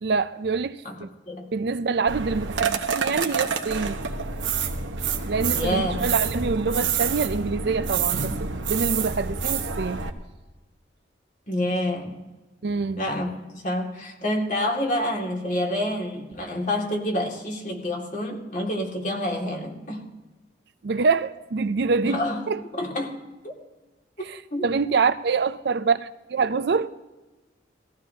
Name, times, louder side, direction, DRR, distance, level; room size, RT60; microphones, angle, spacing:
voice 1, 0.0-1.1 1.5-4.0 5.3-10.0 12.6-13.0 20.8-22.6 24.2-26.9, right 4 dB, 60° right, 0.5 m, -25 dB
sound 1, 2.1-10.1, right 6 dB, 90° right, 1.1 m, -27 dB
voice 2, 5.5-6.0 11.5-12.2 13.0-20.1 22.0-22.4 22.7-23.2 23.4-23.5 24.5-24.7, left 1 dB, 45° left, 2.2 m, -28 dB
19.5 x 15.0 x 2.8 m
head